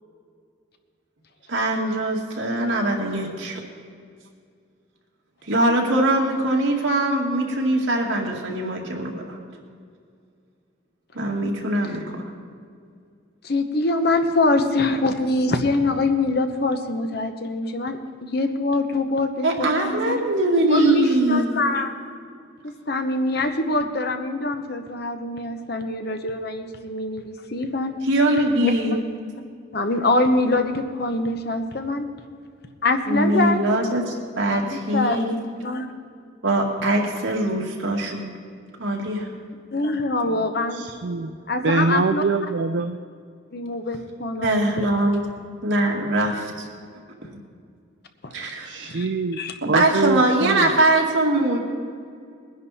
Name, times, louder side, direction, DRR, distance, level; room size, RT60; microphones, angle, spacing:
voice 1, 1.5-3.6 5.5-9.4 11.1-12.3 19.4-21.5 28.1-28.9 33.1-35.4 36.4-38.3 38.8-39.3 44.4-45.2 45.6-46.7 48.3-48.7 49.6-51.6, right 1 dB, 75° right, 0 dB, 2.2 m, -22 dB
voice 2, 13.4-20.2 20.7-21.9 22.9-27.9 28.6-28.7 29.7-32.1 32.8-33.8 34.5-35.2 35.6-35.9 39.7-40.9 41.5-42.2 43.5-44.8 48.2-48.5 48.8-49.0 49.4-49.5, left 2 dB, 55° left, 6 dB, 1.0 m, -24 dB
voice 3, 40.7-41.3 41.6-43.0 48.6-49.4 49.7-50.7, right 3 dB, 60° right, 9 dB, 0.4 m, -24 dB
20.5 x 10.5 x 4.3 m, 2.2 s
head